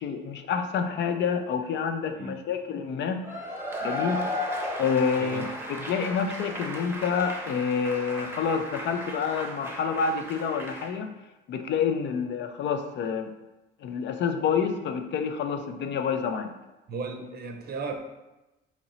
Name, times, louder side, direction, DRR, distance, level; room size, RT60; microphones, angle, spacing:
voice 1, 0.0-3.2 3.8-4.3 4.8-11.1 11.5-13.3 13.8-16.6, left 6 dB, 65° left, 7 dB, 0.4 m, -28 dB
Cheering / Applause / Crowd, 3.2-10.9, left 1 dB, 10° right, 0.7 m, -35 dB
voice 2, 16.9-18.0, right 4 dB, 55° right, 5 dB, 0.6 m, -35 dB
3.0 x 2.9 x 3.9 m, 1.0 s
cardioid pair, 90°, 20 cm